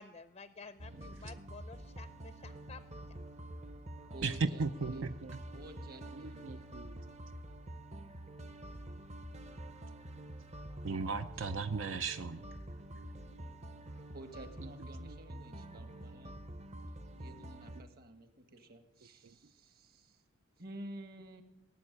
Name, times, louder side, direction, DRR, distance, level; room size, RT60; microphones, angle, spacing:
voice 1, 0.0-3.0, left 4 dB, 30° left, 11 dB, 0.5 m, -52 dB
sound 1, 0.8-17.8, right 1 dB, 35° right, 0.8 m, -47 dB
voice 2, 1.0-1.3 4.2-5.4 6.1-7.0 10.8-12.4 15.0-15.1 19.2-19.3, right 4 dB, 70° right, 9 dB, 0.6 m, -37 dB
voice 3, 4.1-6.8 11.4-11.5 12.0-12.1 12.9-13.3 14.1-16.3 17.2-20.2 20.6-21.4, right 1 dB, 50° right, 7 dB, 1.7 m, -52 dB
18.5 x 7.5 x 9.9 m, 0.91 s
head